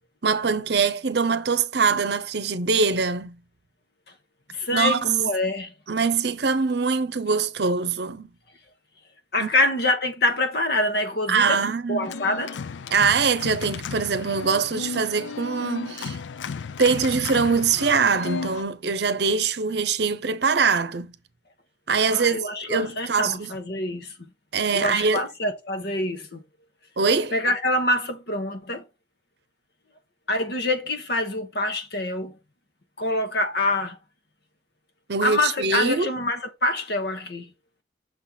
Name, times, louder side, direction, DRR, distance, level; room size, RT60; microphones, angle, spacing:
voice 1, 0.2-3.3 4.7-5.0 5.9-8.3 9.4-9.5 11.3-12.1 12.9-16.2 16.8-21.1 21.9-23.5 24.5-25.2 27.0-27.3 35.1-36.1, right 5 dB, 65° right, 0.7 m, -23 dB
voice 2, 4.5-5.7 9.3-12.6 22.1-24.1 24.7-26.4 27.3-28.9 30.3-32.3 33.0-34.0 35.2-37.5, left 1 dB, 60° left, 1.2 m, -26 dB
Organ, 12.0-18.6, left 5 dB, 85° left, 0.4 m, -34 dB
6.5 x 4.2 x 4.0 m
head